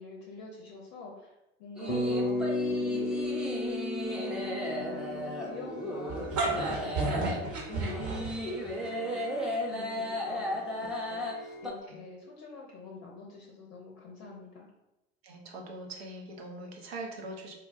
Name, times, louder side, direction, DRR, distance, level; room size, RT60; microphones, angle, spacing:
voice 1, 0.0-6.5 6.7-14.7, left 3 dB, 50° left, 0 dB, 0.6 m, -46 dB
sound 1, 1.8-11.7, equal, ahead, 0.5 m, -35 dB
Bass guitar, 1.9-6.2, left 2 dB, 85° left, 0.6 m, -33 dB
sound 2, 6.1-8.7, right 3 dB, 45° right, 0.9 m, -31 dB
voice 2, 15.2-17.5, right 2 dB, 70° right, 1 dB, 0.7 m, -42 dB
3.8 x 2.2 x 2.5 m, 0.92 s
figure-of-eight pair, 70°, 31 cm